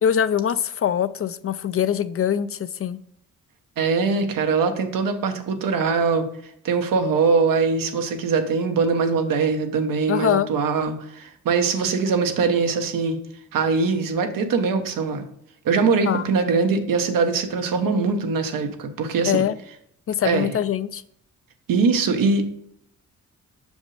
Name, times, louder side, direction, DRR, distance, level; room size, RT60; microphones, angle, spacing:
voice 1, 0.0-3.0 10.1-10.5 16.0-16.3 19.2-19.6 20.1-21.0, left 9 dB, 45° left, 14 dB, 0.4 m, -23 dB
voice 2, 3.8-6.3 6.6-13.2 13.5-15.2 15.6-19.4 20.2-20.5 21.7-22.4, right 4 dB, 85° right, 6 dB, 1.0 m, -22 dB
6.2 x 5.2 x 3.2 m, 0.73 s
cardioid pair, 100°, 33 cm